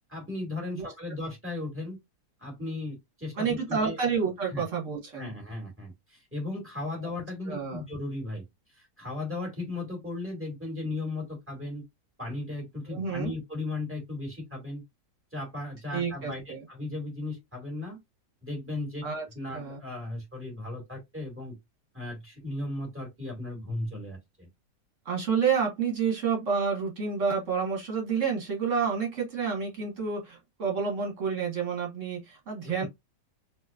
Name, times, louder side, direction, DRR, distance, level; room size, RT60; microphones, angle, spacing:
voice 1, 0.1-2.0 2.4-4.0 4.5-4.6 5.2-8.4 8.7-11.8 12.2-14.8 15.3-16.4 16.7-18.0 18.4-19.0 19.3-21.6 21.9-24.5, left 2 dB, 5° right, 2.1 m, -36 dB
voice 2, 3.4-5.3 7.0-7.1 7.4-7.8 12.9-13.3 15.9-16.7 19.0-19.2 19.5-19.8 25.1-32.9, right 6 dB, 50° right, 1.9 m, -29 dB
4.2 x 3.0 x 2.4 m
omnidirectional pair, 1.8 m